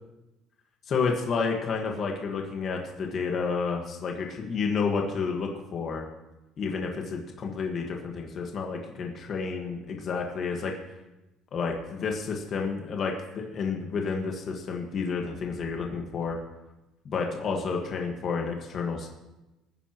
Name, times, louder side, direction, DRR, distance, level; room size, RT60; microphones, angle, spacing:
voice 1, 0.9-6.1 6.6-10.7 11.5-16.4 17.0-19.1, left 5 dB, 40° left, 1 dB, 1.5 m, -30 dB
20.5 x 9.8 x 3.0 m, 1.0 s
cardioid pair, 160°, 0 cm